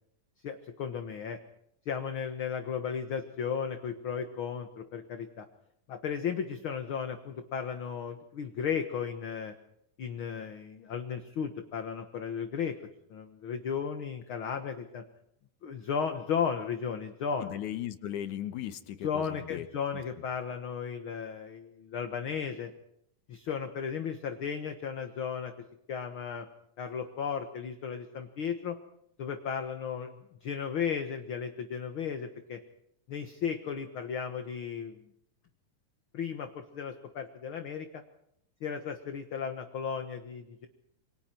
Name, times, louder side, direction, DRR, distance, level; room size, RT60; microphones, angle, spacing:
voice 1, 0.4-1.4 1.9-5.5 5.9-9.5 10.0-12.7 13.1-15.0 15.6-17.6 19.0-22.7 23.3-25.5 25.9-26.5 26.8-28.8 29.2-30.1 30.4-32.6 33.1-35.0 36.1-37.9 38.6-40.7, left 7 dB, 50° left, 6 dB, 1.7 m, -35 dB
voice 2, 17.4-19.7 19.9-20.0, left 11 dB, 75° left, 10 dB, 2.5 m, -37 dB
28.0 x 25.5 x 4.5 m, 0.77 s
omnidirectional pair, 3.7 m